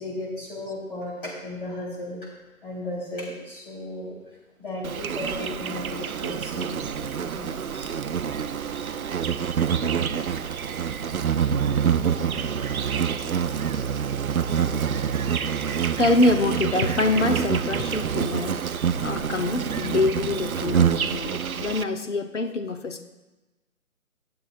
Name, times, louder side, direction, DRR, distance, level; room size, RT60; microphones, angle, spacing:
voice 1, 0.0-2.4 2.6-4.2 4.6-7.9 10.2-10.5, left 1 dB, 35° left, -5 dB, 4.0 m, -35 dB
Insect, 4.8-21.8, right 7 dB, 75° right, 0.7 m, -26 dB
voice 2, 16.0-23.0, left 2 dB, 55° left, 7 dB, 1.0 m, -25 dB
19.0 x 7.6 x 2.5 m, 1.1 s
hypercardioid pair, 175°, 43 cm